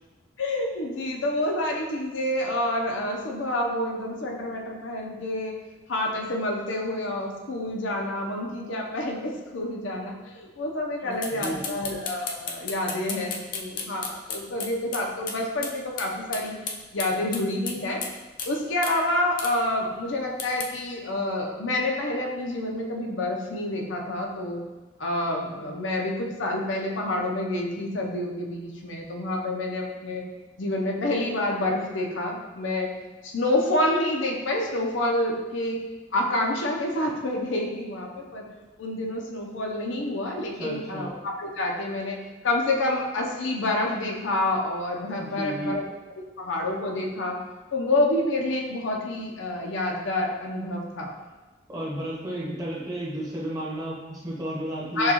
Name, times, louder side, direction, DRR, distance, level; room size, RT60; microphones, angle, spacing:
voice 1, 0.4-5.5 5.9-16.6 16.9-18.0 18.5-24.6 25.0-30.2 30.6-32.9 33.2-35.8 36.1-38.4 38.8-42.2 42.4-45.8 46.4-47.4 47.7-51.1 55.0-55.1, left 1 dB, 85° left, -1 dB, 0.7 m, -28 dB
voice 2, 11.0-11.7 40.6-41.1 45.2-45.7 51.7-55.1, right 1 dB, 20° right, -6 dB, 0.9 m, -33 dB
sound 1, 11.2-15.4 15.6-15.7 16.0-16.1 16.3-18.1 18.4-18.5 18.8-19.0 19.4-19.5 20.4-20.7, left 5 dB, 45° left, 0.4 m, -33 dB
6.5 x 2.3 x 2.9 m, 1.2 s
head